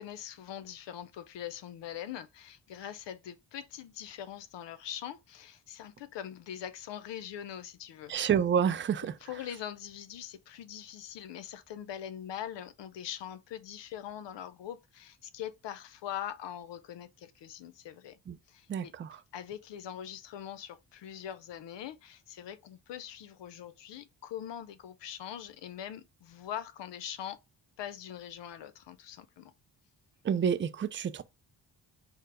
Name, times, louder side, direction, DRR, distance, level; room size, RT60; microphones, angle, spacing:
voice 1, 0.0-8.1 9.2-18.2 18.5-18.9 19.3-27.4 27.8-29.5, left 10 dB, 70° left, 0.6 m, -42 dB
voice 2, 8.1-9.2 18.3-18.4 18.7-19.2 30.2-31.2, right 8 dB, 30° right, 0.4 m, -29 dB
4.5 x 2.1 x 4.7 m
cardioid pair, 70°, 44 cm